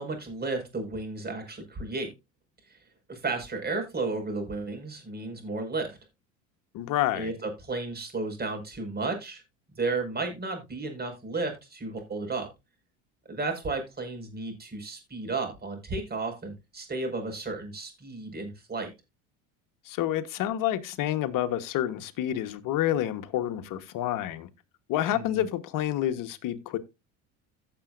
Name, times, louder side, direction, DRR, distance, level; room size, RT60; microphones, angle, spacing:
voice 1, 0.0-2.1 2.7-2.8 3.1-6.0 7.1-9.4 9.8-12.5 13.3-18.9 25.1-25.4, right 3 dB, 25° right, 5.3 m, -33 dB
voice 2, 6.7-7.3 19.8-24.5 24.9-26.8, left 12 dB, 55° left, 1.3 m, -28 dB
16.0 x 6.9 x 2.6 m
supercardioid pair, 85°, 37 cm